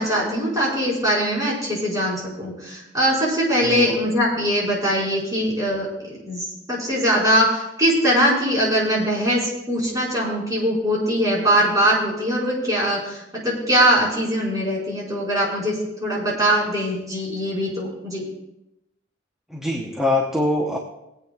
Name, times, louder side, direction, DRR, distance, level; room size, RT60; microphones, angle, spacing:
voice 1, 0.0-5.9 6.2-18.2, equal, 20° right, -6 dB, 4.8 m, -21 dB
voice 2, 3.6-4.0 19.5-20.8, left 1 dB, 5° right, -1 dB, 0.9 m, -23 dB
22.5 x 8.7 x 2.4 m, 0.90 s
head